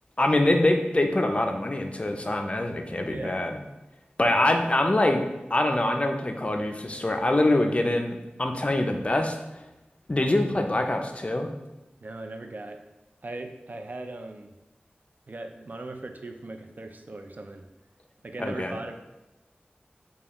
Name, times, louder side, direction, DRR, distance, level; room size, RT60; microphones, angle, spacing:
voice 1, 0.2-3.5 4.2-9.3 10.1-11.5 18.4-18.8, left 1 dB, 35° left, 4 dB, 0.4 m, -24 dB
voice 2, 3.1-3.5 4.2-4.4 12.0-12.8 13.2-14.5 15.3-17.6 18.2-19.0, right 2 dB, 55° right, 5 dB, 0.3 m, -39 dB
5.0 x 2.3 x 2.9 m, 0.99 s
wide cardioid pair, 60°, 4 cm